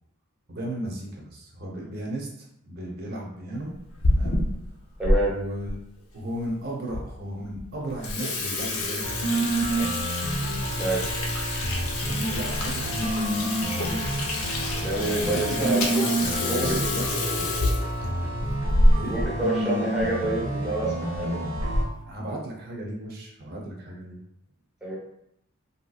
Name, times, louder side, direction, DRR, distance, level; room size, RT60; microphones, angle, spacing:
voice 1, 0.5-3.8 4.0-4.4 5.3-5.8 6.1-9.7 12.0-14.8 15.2-15.9 16.2-17.6 18.9-19.2 22.0-24.2, right 1 dB, 45° right, -2 dB, 0.8 m, -35 dB
Water tap faucet / Sink (filling or washing), 3.7-5.2 5.7-5.8 6.5-6.6 6.9-7.0 7.4-7.6 7.9-19.3 19.6-19.7 20.0-20.1 20.9-21.2 21.6-22.0, left 1 dB, 80° left, 0.7 m, -27 dB
voice 2, 5.0-5.4 10.8-11.1 14.8-16.1 16.4-16.8 19.1-21.4 24.8-25.0, right 2 dB, 5° right, -6 dB, 0.8 m, -27 dB
sound 1, 9.0-21.8, right 1 dB, 85° right, 1.1 m, -29 dB
3.3 x 2.8 x 2.3 m, 0.76 s
head